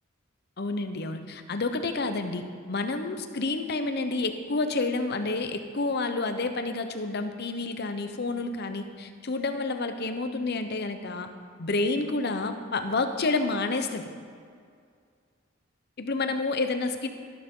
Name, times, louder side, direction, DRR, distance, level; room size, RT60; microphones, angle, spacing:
voice 1, 0.6-11.3 11.6-14.1 16.0-17.1, left 3 dB, 55° left, 8 dB, 0.8 m, -29 dB
13.0 x 12.0 x 3.8 m, 2.2 s
head